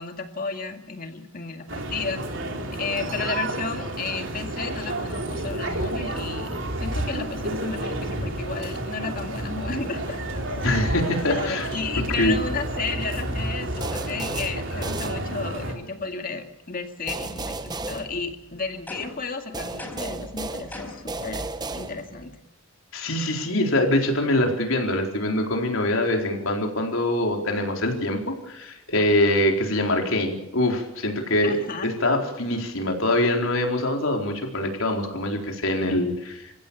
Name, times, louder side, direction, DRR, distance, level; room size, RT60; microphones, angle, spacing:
voice 1, 0.0-2.2 2.8-10.2 10.5-10.7 11.3-21.4 21.7-22.4 31.4-31.9, left 4 dB, 45° left, 5 dB, 2.2 m, -33 dB
sound 1, 1.7-15.7, right 1 dB, 60° right, 3.8 m, -30 dB
voice 2, 10.6-11.7 12.2-12.4 22.9-31.6 31.8-36.5, left 1 dB, 75° left, 2 dB, 4.2 m, -24 dB
sound 2, 13.8-15.7 17.1-18.8 19.5-22.3, right 3 dB, 20° right, 1.0 m, -34 dB
sound 3, 18.9-19.3 19.8-20.2 20.7-21.1, left 1 dB, 10° left, 4.9 m, -38 dB
28.5 x 15.5 x 7.0 m, 0.90 s
head